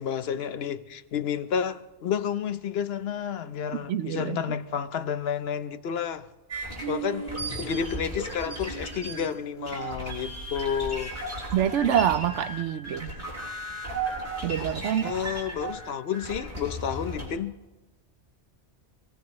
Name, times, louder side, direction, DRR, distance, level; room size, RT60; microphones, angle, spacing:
voice 1, 0.0-6.2 6.9-11.2 15.0-17.6, left 8 dB, 65° left, 0.9 m, -31 dB
voice 2, 3.9-4.4 11.5-13.2 14.4-15.1, right 10 dB, 85° right, 1.0 m, -26 dB
sound 1, 6.5-17.3, right 2 dB, 50° right, 6.0 m, -35 dB
25.0 x 17.0 x 3.2 m
omnidirectional pair, 1.2 m